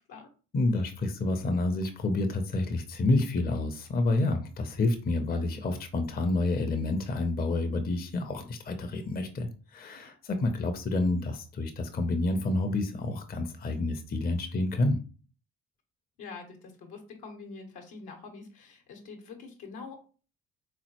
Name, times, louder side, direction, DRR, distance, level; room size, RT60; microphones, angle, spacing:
voice 1, 0.5-15.0, left 2 dB, 25° left, 6 dB, 0.5 m, -29 dB
voice 2, 16.2-20.0, left 4 dB, 65° left, 4 dB, 0.9 m, -45 dB
3.7 x 2.1 x 2.9 m, 0.37 s
hypercardioid pair, 45°, 41 cm